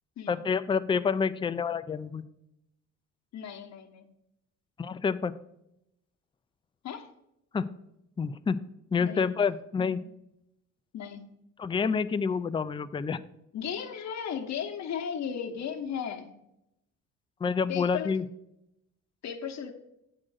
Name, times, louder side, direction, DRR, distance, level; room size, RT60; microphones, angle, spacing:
voice 1, 0.3-2.2 4.8-5.4 7.5-7.7 8.2-8.6 8.9-10.0 11.6-13.2 17.4-18.2, left 5 dB, 15° left, 13 dB, 0.4 m, -28 dB
voice 2, 3.3-4.1 6.8-7.1 9.0-9.3 9.8-9.9 10.9-11.2 13.5-16.3 17.7-18.1 19.2-19.7, left 8 dB, 65° left, 4 dB, 1.0 m, -35 dB
8.8 x 3.8 x 6.2 m, 0.83 s
cardioid pair, 90°, 30 cm